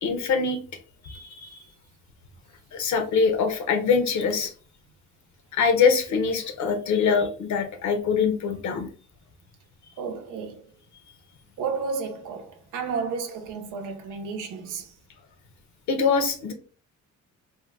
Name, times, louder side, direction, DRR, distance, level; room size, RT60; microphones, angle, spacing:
voice 1, 0.0-0.6 1.0-1.6 2.7-4.5 5.5-8.9 15.9-16.5, left 5 dB, 70° left, 0.8 m, -23 dB
voice 2, 10.0-10.6 11.6-14.9, right 5 dB, 90° right, 0.7 m, -32 dB
2.7 x 2.2 x 3.4 m
cardioid pair, 90°, 30 cm